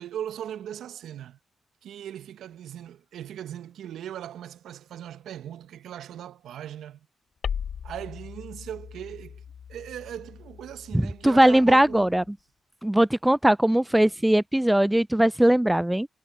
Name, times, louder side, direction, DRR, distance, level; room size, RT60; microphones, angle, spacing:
voice 1, 0.0-1.4 1.8-7.0 7.8-9.4 9.7-12.1, right 10 dB, 75° right, 1.4 m, -39 dB
sound 1, 7.4-12.3, left 7 dB, 65° left, 6.4 m, -39 dB
voice 2, 10.9-12.2 12.8-16.1, right 1 dB, 10° right, 0.6 m, -20 dB
hypercardioid pair, 40°, 0 cm